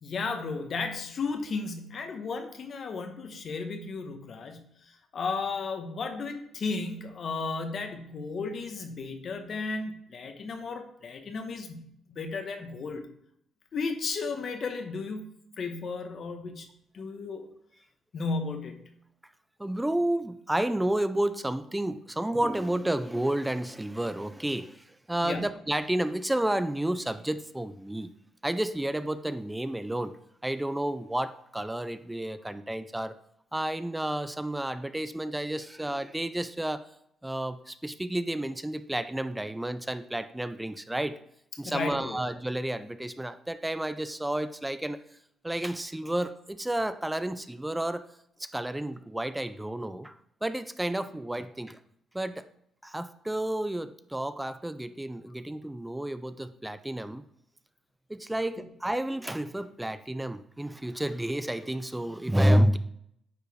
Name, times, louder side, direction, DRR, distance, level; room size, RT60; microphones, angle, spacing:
voice 1, 0.0-13.1 13.7-15.3 15.6-16.7 16.9-17.5 18.1-18.8 25.2-25.5 41.6-42.2 58.6-58.7, left 4 dB, 55° left, 6 dB, 1.0 m, -34 dB
voice 2, 19.6-28.1 28.4-30.1 30.4-33.1 33.5-36.8 37.2-41.2 41.6-45.0 45.4-48.0 48.4-50.1 50.4-51.8 52.1-52.5 52.8-57.2 58.1-62.8, right 1 dB, 10° right, 12 dB, 0.4 m, -30 dB
9.5 x 4.4 x 3.5 m, 0.74 s
cardioid pair, 90°, 0 cm